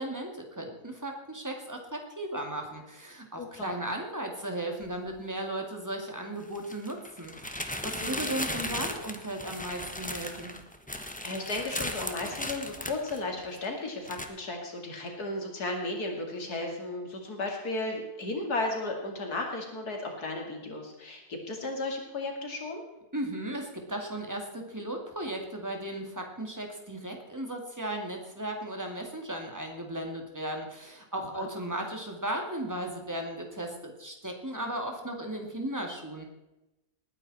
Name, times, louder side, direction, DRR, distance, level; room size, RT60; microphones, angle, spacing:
voice 1, 0.0-10.5 23.1-36.3, right 1 dB, 10° right, 2 dB, 2.3 m, -36 dB
voice 2, 3.4-3.7 8.0-8.3 11.2-22.8 31.3-31.5, left 2 dB, 75° left, 2 dB, 2.9 m, -34 dB
sound 1, 4.8-4.9 6.4-13.7 14.0-14.3, left 1 dB, 5° left, 0.8 m, -36 dB
19.5 x 9.7 x 4.2 m, 0.96 s
omnidirectional pair, 1.7 m